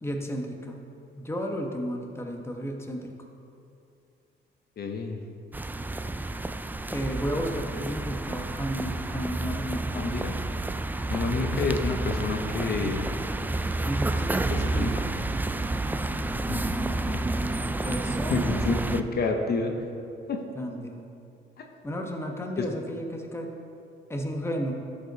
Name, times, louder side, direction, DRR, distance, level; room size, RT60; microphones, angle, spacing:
voice 1, 0.0-0.8 1.2-3.1 6.9-10.3 13.8-15.2 17.8-18.7 20.5-21.1 21.8-23.5 24.1-24.7, equal, 10° left, 2 dB, 1.1 m, -33 dB
voice 2, 4.8-5.2 9.9-10.3 11.1-13.1 14.5-14.9 16.5-17.2 18.3-19.7 20.3-20.4 21.6-21.7, left 4 dB, 55° left, 3 dB, 0.9 m, -29 dB
sound 1, 5.5-19.0, right 2 dB, 10° right, 0.3 m, -30 dB
12.5 x 5.3 x 4.0 m, 2.6 s
cardioid pair, 90°, 20 cm